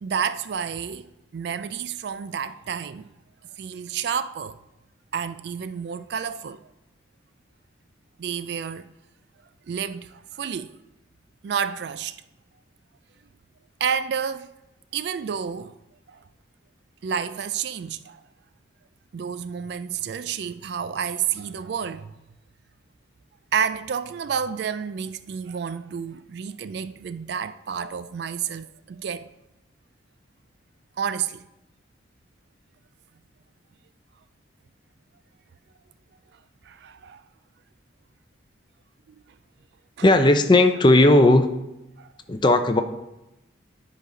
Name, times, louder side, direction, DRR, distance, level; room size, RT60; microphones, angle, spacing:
voice 1, 0.0-3.1 3.6-4.6 5.1-6.6 8.2-8.9 9.7-10.7 11.4-12.2 13.8-14.5 14.9-15.7 16.1-16.2 17.0-18.2 19.1-22.1 23.5-29.3 31.0-31.5 36.6-37.2 39.1-39.2 42.0-42.1, right 7 dB, 60° right, 0.3 m, -30 dB
voice 2, 40.0-41.5 42.3-42.8, left 2 dB, 25° left, 0.5 m, -16 dB
10.0 x 4.0 x 5.0 m
head